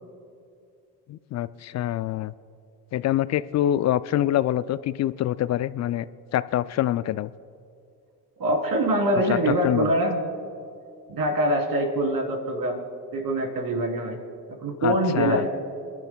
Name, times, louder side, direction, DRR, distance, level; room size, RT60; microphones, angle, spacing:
voice 1, 1.1-2.3 2.9-6.1 6.3-7.3 9.3-9.9 14.8-15.4, left 12 dB, 35° left, 17 dB, 0.4 m, -25 dB
voice 2, 8.4-10.2 11.1-12.8 13.1-14.2 14.6-15.5, right 1 dB, 45° right, 2 dB, 3.8 m, -24 dB
28.0 x 12.0 x 2.4 m, 2.5 s
hypercardioid pair, 55°, 48 cm